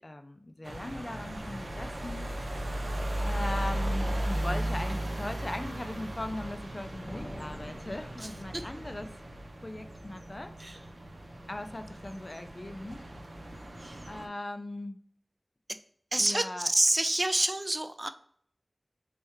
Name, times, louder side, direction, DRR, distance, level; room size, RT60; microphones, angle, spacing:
voice 1, 0.0-2.3 3.2-9.1 9.6-10.5 11.5-13.0 14.1-15.0 16.2-16.7, left 1 dB, 40° left, 8 dB, 0.4 m, -39 dB
sound 1, 0.6-14.3, right 1 dB, 85° right, 0.6 m, -36 dB
sound 2, 7.0-9.3, equal, 15° left, 1.4 m, -45 dB
voice 2, 8.2-8.7 10.6-10.8 13.8-14.0 15.7-15.8 16.1-18.1, right 1 dB, 35° right, 10 dB, 0.3 m, -28 dB
3.3 x 3.3 x 3.0 m, 0.62 s
wide cardioid pair, 55°, 0 cm